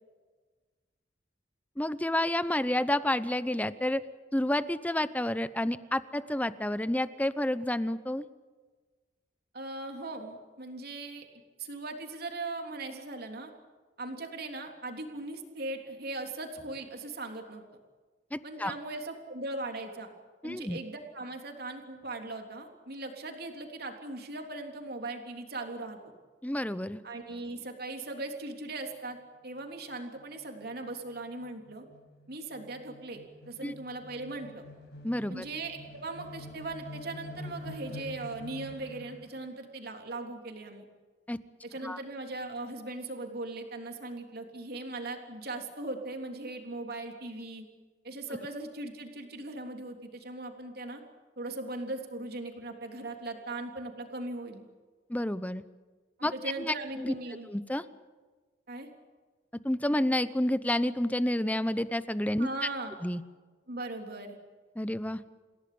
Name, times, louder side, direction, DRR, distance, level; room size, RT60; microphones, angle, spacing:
voice 1, 1.8-4.0 4.3-8.2 18.3-18.7 20.4-20.8 26.4-27.0 33.6-33.7 35.0-35.4 41.3-41.4 41.8-42.0 55.1-55.6 56.2-56.3 56.6-57.1 57.5-57.8 59.6-62.5 63.0-63.2 64.8-65.2, left 1 dB, 10° left, 14 dB, 0.8 m, -29 dB
voice 2, 9.5-11.3 11.6-13.5 14.0-17.6 18.4-20.1 20.4-26.0 27.0-29.2 29.4-31.9 32.3-34.6 35.3-40.9 41.6-47.7 48.0-51.0 51.4-54.6 56.2-57.5 58.7-58.9 62.4-63.0 63.7-64.4, right 2 dB, 60° right, 3 dB, 3.5 m, -39 dB
sound 1, 28.7-29.0 29.3-29.5 29.7-39.4, left 1 dB, 70° left, 6.4 m, -47 dB
29.0 x 17.0 x 8.7 m, 1.4 s
head